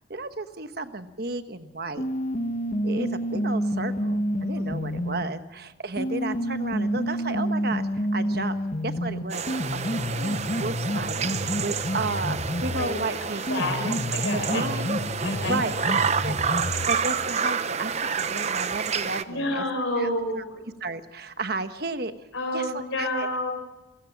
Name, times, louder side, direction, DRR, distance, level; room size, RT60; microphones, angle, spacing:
voice 1, 0.1-2.0 2.8-8.5 8.8-14.0 14.3-14.9 15.5-15.7 16.2-16.3 16.9-19.6 20.0-20.1 20.8-22.3 22.5-23.3, right 3 dB, 50° right, 9 dB, 1.2 m, -33 dB
sound 1, 2.0-5.3 6.0-12.9 13.5-16.9, equal, 40° left, 1.3 m, -29 dB
voice 2, 4.5-4.9 12.7-13.0 13.5-13.8 14.1-14.7 15.2-16.0 19.3-20.6 22.3-23.5, left 1 dB, 90° left, 1 dB, 4.2 m, -29 dB
sound 2, 9.3-19.2, right 6 dB, 35° right, 0.7 m, -29 dB
28.0 x 16.0 x 5.9 m, 1.1 s
head